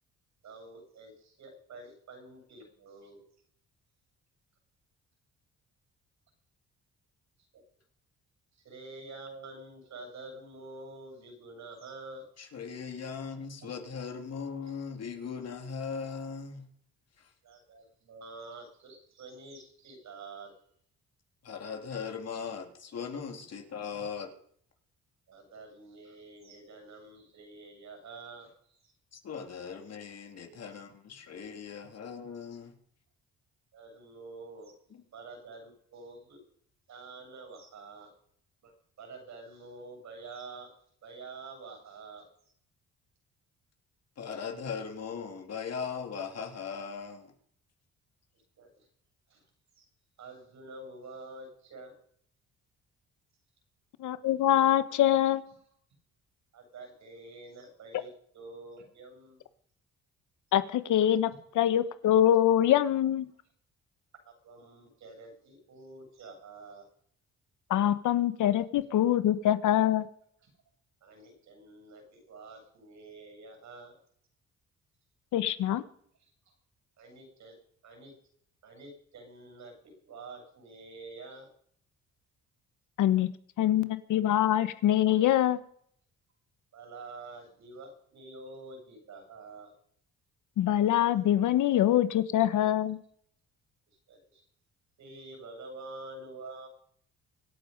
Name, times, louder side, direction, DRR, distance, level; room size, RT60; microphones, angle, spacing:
voice 1, 0.4-3.2 7.5-7.6 8.5-12.3 17.4-20.5 25.3-28.9 33.7-34.7 35.1-36.4 36.9-38.1 38.6-38.7 39.0-40.7 41.0-42.3 48.6-48.9 49.3-49.5 49.7-49.9 50.2-51.9 56.5-58.1 58.3-59.4 64.2-66.9 70.4-70.5 71.0-74.0 76.2-76.5 77.0-77.6 77.8-78.1 78.6-81.5 85.1-85.2 86.7-89.7 94.1-94.4 95.0-96.7, right 3 dB, 65° right, 7.9 m, -48 dB
voice 2, 12.4-16.6 17.2-17.3 21.4-24.3 29.1-32.7 34.9-35.0 44.2-47.3, left 6 dB, 55° left, 3.4 m, -39 dB
voice 3, 54.0-55.4 60.5-63.3 67.7-70.1 75.3-75.8 83.0-83.3 83.6-85.6 90.6-93.0, left 11 dB, 80° left, 1.2 m, -24 dB
25.0 x 8.8 x 5.4 m
cardioid pair, 90°, 30 cm